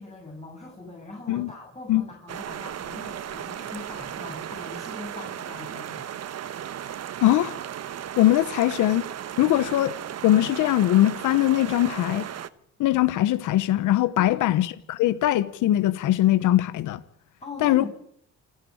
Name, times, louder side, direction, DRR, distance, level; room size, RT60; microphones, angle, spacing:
voice 1, 0.0-6.1 14.2-14.6 17.4-17.9, left 2 dB, 20° left, 7.2 m, -41 dB
sound 1, 2.3-12.5, right 10 dB, 55° right, 1.1 m, -36 dB
voice 2, 7.2-7.6 8.2-9.0 9.4-9.9 10.2-12.3 12.8-17.0 17.6-17.8, left 14 dB, 85° left, 1.1 m, -21 dB
28.5 x 10.5 x 8.8 m
cardioid pair, 90°, 30 cm